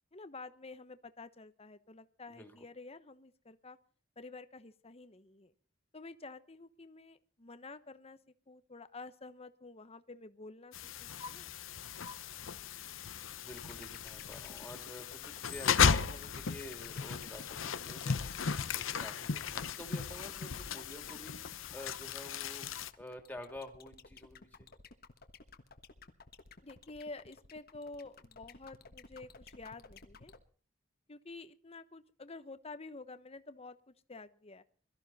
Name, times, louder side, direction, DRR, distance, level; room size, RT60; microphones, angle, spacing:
voice 1, 0.1-3.8 4.2-5.5 5.9-8.2 8.5-10.7 11.0-11.5 26.6-30.3 31.1-34.6, left 3 dB, 30° left, 12 dB, 1.0 m, -49 dB
sound 1, 10.7-22.9, left 6 dB, 75° left, 0.8 m, -35 dB
voice 2, 13.4-24.7, left 1 dB, 10° left, 4 dB, 2.9 m, -50 dB
sound 2, 13.5-30.4, left 4 dB, 50° left, 1.4 m, -54 dB
22.0 x 13.5 x 4.2 m, 0.42 s
head